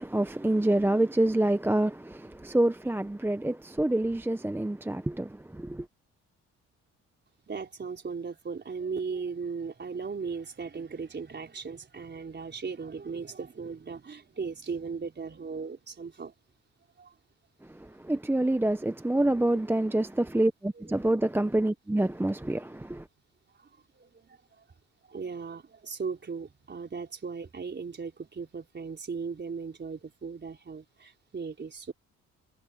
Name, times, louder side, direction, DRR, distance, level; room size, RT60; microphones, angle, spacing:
voice 1, 0.0-5.9 17.7-23.1, right 1 dB, 5° right, 0.8 m, -27 dB
voice 2, 7.5-16.3 17.0-17.1 23.6-23.7 23.9-24.3 25.1-31.9, right 5 dB, 35° right, 4.2 m, -37 dB
cardioid pair, 90°, 30 cm